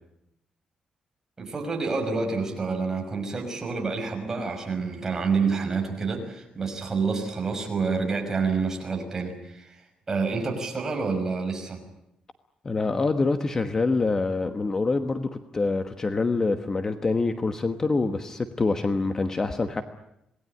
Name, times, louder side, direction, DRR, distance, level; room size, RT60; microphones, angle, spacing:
voice 1, 1.4-9.8 10.1-11.8, right 4 dB, 20° right, 2 dB, 5.9 m, -28 dB
voice 2, 12.6-19.8, left 3 dB, 25° left, 8 dB, 1.2 m, -25 dB
27.0 x 19.5 x 9.9 m, 0.82 s
cardioid pair, 160°, 2 cm